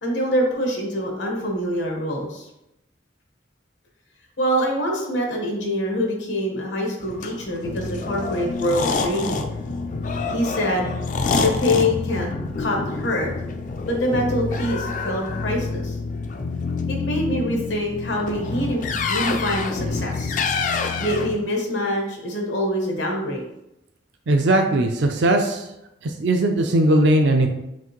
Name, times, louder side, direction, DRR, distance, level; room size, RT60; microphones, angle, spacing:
voice 1, 0.0-2.5 4.4-9.5 10.3-10.9 11.4-12.3 12.6-13.3 13.9-16.0 16.9-20.4 21.0-23.4, equal, 85° left, 0 dB, 1.2 m, -25 dB
sound 1, 7.0-21.4, left 4 dB, 45° left, 0.3 m, -27 dB
voice 2, 24.3-25.6 26.0-27.5, right 1 dB, 75° right, 4 dB, 0.4 m, -19 dB
5.9 x 2.5 x 3.0 m, 0.86 s
head